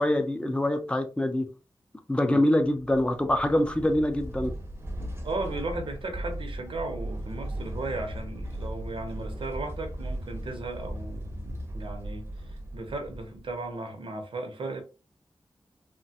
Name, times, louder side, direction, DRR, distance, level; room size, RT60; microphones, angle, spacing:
voice 1, 0.0-1.5 2.1-4.5, left 1 dB, 10° left, 0.5 m, -25 dB
sound 1, 2.7-13.7, right 1 dB, 30° right, 0.6 m, -37 dB
voice 2, 5.2-14.8, right 2 dB, 75° right, 0.7 m, -36 dB
3.1 x 2.2 x 2.7 m
wide cardioid pair, 115°, 9 cm